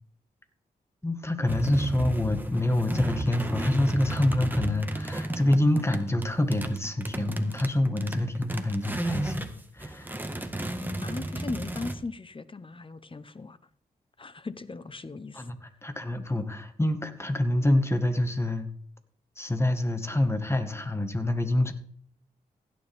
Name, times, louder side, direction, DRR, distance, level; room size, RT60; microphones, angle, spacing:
voice 1, 1.0-10.2 15.3-18.7 19.4-21.7, left 1 dB, 15° left, 1.8 m, -27 dB
sound 1, 1.5-9.5 9.8-11.9, right 1 dB, 10° right, 1.7 m, -32 dB
voice 2, 11.0-13.6 14.2-15.5, left 3 dB, 35° left, 0.9 m, -38 dB
16.0 x 9.7 x 3.7 m
cardioid pair, 50°, 16 cm